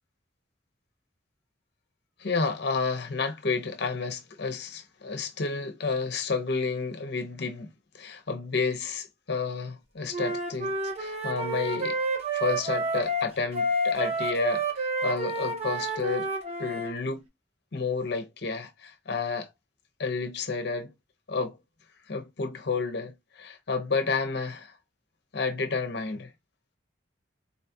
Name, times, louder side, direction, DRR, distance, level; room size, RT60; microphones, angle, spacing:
voice 1, 2.2-12.0 12.3-16.3 16.6-17.2 17.7-19.5 20.0-20.9 21.3-21.6 22.1-24.8 25.3-26.3, left 4 dB, 60° left, 0.7 m, -31 dB
Wind instrument woodwind instrument, 10.1-16.9, right 2 dB, 35° right, 0.9 m, -29 dB
4.0 x 2.3 x 2.7 m
head